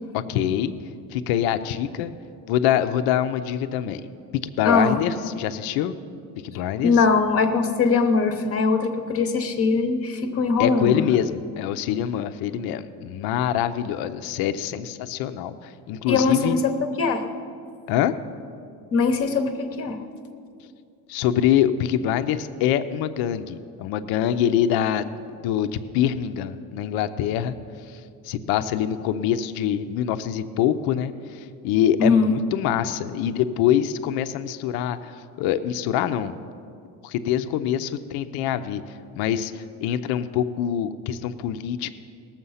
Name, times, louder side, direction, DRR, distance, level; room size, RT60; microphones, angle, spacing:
voice 1, 0.1-0.7 1.1-2.1 2.5-4.0 4.4-5.9 6.4-6.9 10.6-16.6 17.9-18.1 21.1-27.5 28.2-36.3 37.0-38.8 39.2-41.9, left 10 dB, 65° left, 10 dB, 0.6 m, -24 dB
voice 2, 4.6-5.0 6.8-11.0 16.1-17.2 18.9-20.0 32.0-32.3, left 4 dB, 35° left, 6 dB, 0.9 m, -21 dB
19.0 x 7.3 x 5.6 m, 2.4 s
cardioid pair, 170°, 39 cm